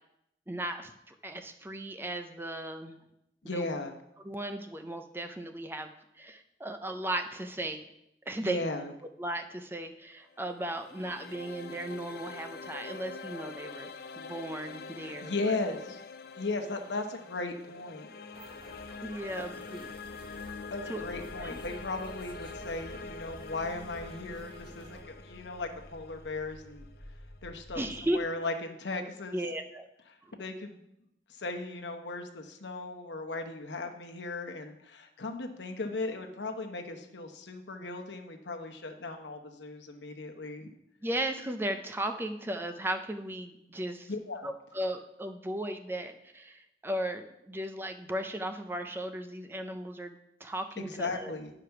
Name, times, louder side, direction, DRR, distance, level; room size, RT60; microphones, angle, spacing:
voice 1, 0.5-3.0 3.5-3.7 4.2-7.8 8.3-8.6 9.2-13.9 14.2-15.6 19.0-20.5 20.9-21.0 21.4-21.6 27.7-28.2 29.3-29.9 30.2-30.3 41.0-44.1 44.4-51.3, right 1 dB, 15° right, 7 dB, 0.5 m, -36 dB
voice 2, 3.4-3.9 8.4-8.9 15.0-16.0 16.4-18.1 19.3-19.4 20.7-26.8 27.4-27.8 28.1-29.4 30.4-30.8 31.4-40.7 44.1-44.5 50.9-51.5, left 3 dB, 85° left, 4 dB, 1.0 m, -37 dB
sound 1, 10.2-27.3, left 4 dB, 55° left, 0.4 m, -45 dB
sound 2, 18.3-25.0, right 2 dB, 30° right, 1.0 m, -51 dB
sound 3, 21.0-28.1, equal, 55° right, 2.6 m, -51 dB
9.6 x 5.0 x 5.8 m, 0.82 s
head